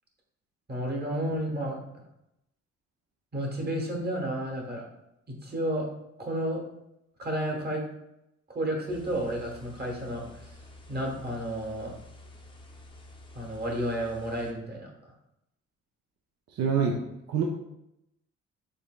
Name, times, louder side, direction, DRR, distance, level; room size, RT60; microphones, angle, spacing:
voice 1, 0.7-1.8 3.3-4.8 5.3-5.9 6.2-6.6 7.2-7.8 8.5-10.6 10.9-12.0 13.3-14.9, right 1 dB, 35° right, 0 dB, 1.3 m, -31 dB
sound 1, 8.9-14.5, left 1 dB, 15° left, 0.7 m, -50 dB
voice 2, 16.5-17.0 17.3-17.4, right 6 dB, 55° right, 1 dB, 0.6 m, -25 dB
5.4 x 4.0 x 2.3 m, 0.84 s
cardioid pair, 90°, 30 cm